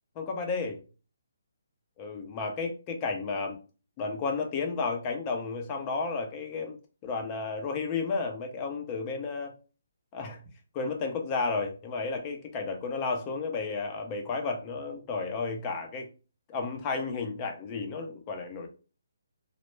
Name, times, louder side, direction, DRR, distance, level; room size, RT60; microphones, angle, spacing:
voice 1, 0.2-0.8 2.0-3.6 4.0-6.8 7.0-9.5 10.1-10.4 10.7-16.1 16.5-18.7, left 4 dB, 25° left, 3 dB, 0.5 m, -32 dB
2.1 x 2.1 x 3.1 m, 0.35 s
hypercardioid pair, 155°, 0 cm